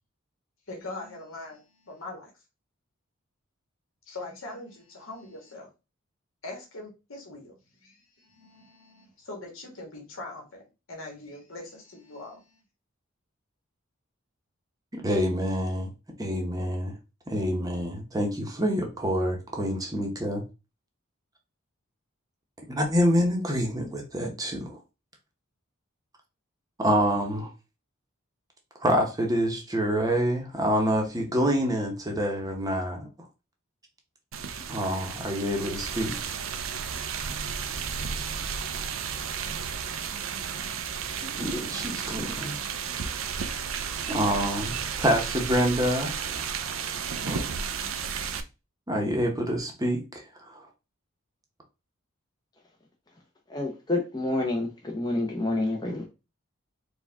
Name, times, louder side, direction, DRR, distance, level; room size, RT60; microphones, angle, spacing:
voice 1, 0.7-2.3 4.1-5.7 6.4-7.5 7.8-12.6, left 2 dB, 70° left, 1.5 m, -42 dB
voice 2, 14.9-15.9 16.2-17.0 17.3-20.4 22.7-24.8 26.8-27.5 28.8-33.1 34.7-36.2 41.2-42.6 44.1-46.7 47.3-47.4 48.9-50.6, equal, 15° right, 0.8 m, -27 dB
sound 1, 34.3-48.4, right 6 dB, 65° right, 0.5 m, -33 dB
voice 3, 53.5-56.0, left 2 dB, 20° left, 0.6 m, -28 dB
4.5 x 2.3 x 3.4 m
head